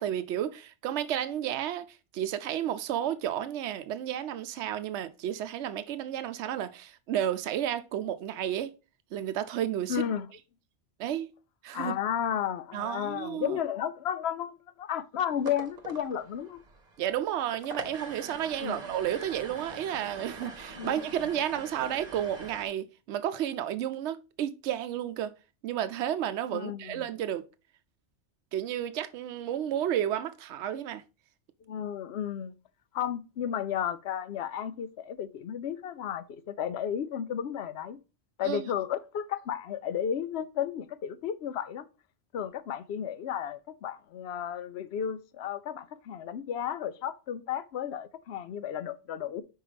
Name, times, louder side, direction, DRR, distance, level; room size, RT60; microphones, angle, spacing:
voice 1, 0.0-8.7 9.1-10.0 11.0-11.3 11.6-11.9 12.7-13.6 17.0-25.3 25.6-27.4 28.5-31.0 38.4-38.7, right 10 dB, 80° right, 0.9 m, -32 dB
voice 2, 9.9-10.3 11.7-16.6 18.6-18.8 20.8-21.0 26.5-27.0 31.7-32.5 32.9-38.0 38.4-41.8 42.3-49.4, left 9 dB, 70° left, 0.8 m, -33 dB
sound 1, 15.3-22.7, right 3 dB, 40° right, 1.1 m, -44 dB
5.5 x 4.6 x 4.9 m
omnidirectional pair, 1.2 m